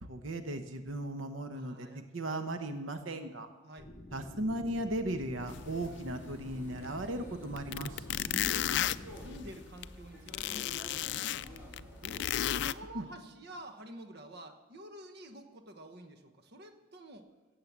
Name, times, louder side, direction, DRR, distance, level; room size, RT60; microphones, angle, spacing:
voice 1, 0.0-3.5 4.1-8.0 12.9-13.1, right 1 dB, 90° right, 8 dB, 1.0 m, -37 dB
voice 2, 1.5-2.1 3.6-3.9 8.2-8.9 9.1-12.3 12.6-17.3, right 1 dB, 55° right, 7 dB, 1.0 m, -49 dB
sound 1, 3.8-9.5, left 1 dB, 35° left, 1.1 m, -49 dB
sound 2, 5.4-12.7, left 1 dB, 10° right, 4.1 m, -50 dB
sound 3, 5.5-5.6 6.0-6.1 7.1-7.2 7.6-9.8 10.3-12.7, left 12 dB, 60° left, 0.4 m, -33 dB
16.0 x 7.6 x 7.3 m, 1.3 s
head